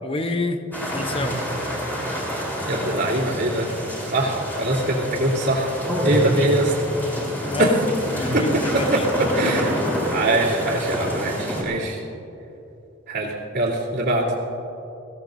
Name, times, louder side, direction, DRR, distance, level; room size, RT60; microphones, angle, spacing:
voice 1, 0.0-1.4 7.5-9.1, left 2 dB, 30° left, 7 dB, 0.9 m, -28 dB
sound 1, 0.7-11.6, equal, 10° left, 4.0 m, -27 dB
voice 2, 2.6-3.7 4.1-5.7 6.0-6.7 7.6-7.7 8.3-8.6 8.9-9.0 9.3-9.7 10.1-12.0 13.1-14.2, right 1 dB, 60° right, -10 dB, 2.8 m, -22 dB
23.0 x 16.5 x 2.7 m, 2.8 s
head